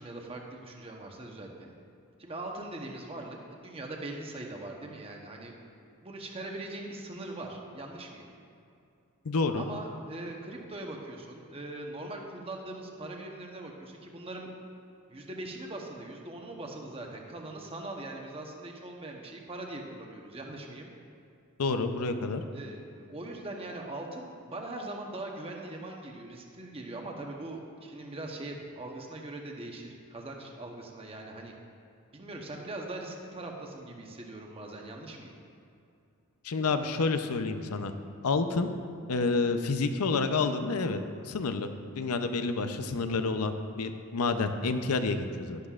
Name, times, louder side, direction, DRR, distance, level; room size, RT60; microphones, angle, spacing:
voice 1, 0.0-1.7 2.2-5.5 6.0-8.2 9.5-14.5 15.1-20.9 22.5-31.5 32.1-35.3, right 2 dB, 25° right, 1 dB, 0.9 m, -41 dB
voice 2, 9.2-9.6 21.6-22.4 36.4-37.9 38.2-38.7 39.1-41.0 41.2-41.7 42.0-45.6, left 3 dB, 80° left, 8 dB, 0.6 m, -29 dB
11.5 x 11.5 x 2.4 m, 2.6 s
head